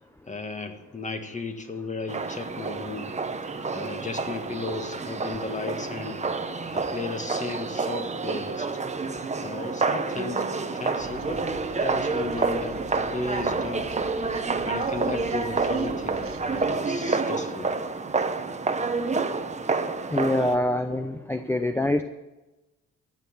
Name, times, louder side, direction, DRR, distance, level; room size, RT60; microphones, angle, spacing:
voice 1, 0.3-3.1 3.7-6.2 6.7-8.7 9.4-13.9 14.7-17.7, left 3 dB, 25° left, 6 dB, 1.7 m, -35 dB
sound 1, 2.1-20.6, right 4 dB, 25° right, 1.0 m, -28 dB
sound 2, 11.0-16.8, right 5 dB, 45° right, 1.3 m, -46 dB
voice 2, 20.1-22.0, left 1 dB, 10° left, 8 dB, 0.7 m, -25 dB
15.0 x 6.6 x 9.7 m, 1.1 s
cardioid pair, 90°, 30 cm